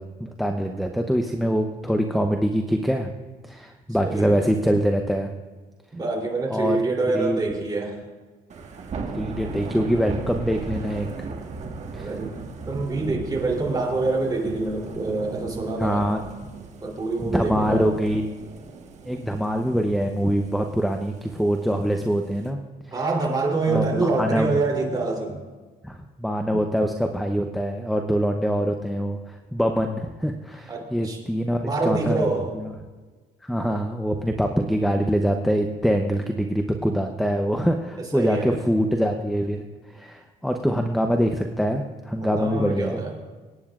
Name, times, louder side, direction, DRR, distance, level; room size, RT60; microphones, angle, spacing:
voice 1, 0.0-3.1 3.5-5.3 6.5-6.8 7.1-7.5 9.1-11.1 11.9-12.1 15.8-16.2 17.2-18.2 19.1-22.6 23.7-24.6 25.8-32.2 32.5-32.7 33.4-39.6 39.9-43.0, equal, ahead, 5 dB, 0.7 m, -24 dB
voice 2, 4.0-4.5 5.9-8.0 11.9-12.3 12.7-16.1 16.8-17.9 22.9-25.4 30.7-31.2 31.6-32.5 38.0-38.6 42.2-43.1, right 3 dB, 25° right, -1 dB, 3.2 m, -26 dB
Thunder / Rain, 8.5-22.5, right 4 dB, 45° right, 1.5 m, -36 dB
24.5 x 9.6 x 2.4 m, 1.4 s
cardioid pair, 110°, 17 cm